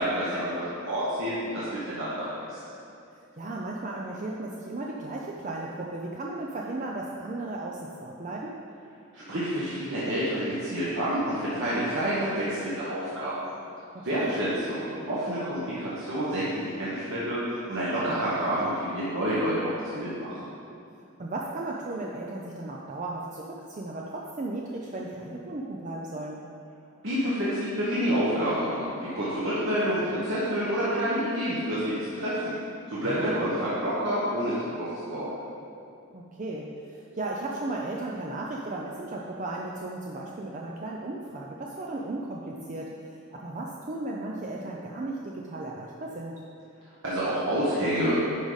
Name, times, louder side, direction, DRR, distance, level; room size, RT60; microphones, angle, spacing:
voice 1, 0.0-2.6 9.1-13.4 14.0-20.4 27.0-32.5 32.9-33.5 33.8-35.3 47.0-48.2, equal, 60° right, -10 dB, 1.4 m, -28 dB
voice 2, 3.1-8.6 13.9-14.4 21.2-26.4 33.0-33.5 36.1-42.9 43.3-46.4, right 2 dB, 35° right, -2 dB, 0.5 m, -35 dB
10.0 x 4.9 x 4.0 m, 2.6 s
head